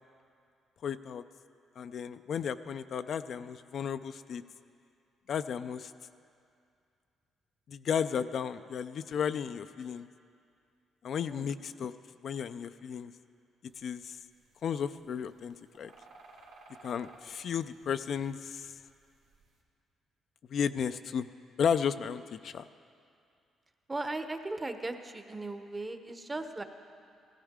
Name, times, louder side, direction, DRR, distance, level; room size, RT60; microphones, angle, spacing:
voice 1, 0.8-1.2 1.8-4.4 5.3-5.9 7.7-10.1 11.0-11.9 12.2-13.1 13.8-14.2 14.6-15.9 16.8-18.8 20.5-21.3 21.6-22.7, left 7 dB, 60° left, 11 dB, 0.3 m, -33 dB
sound 1, 13.7-19.6, right 3 dB, 90° right, 1.8 m, -57 dB
voice 2, 23.9-26.6, right 2 dB, 20° right, 8 dB, 0.8 m, -37 dB
15.5 x 15.0 x 3.6 m, 2.4 s
cardioid pair, 90°, 0 cm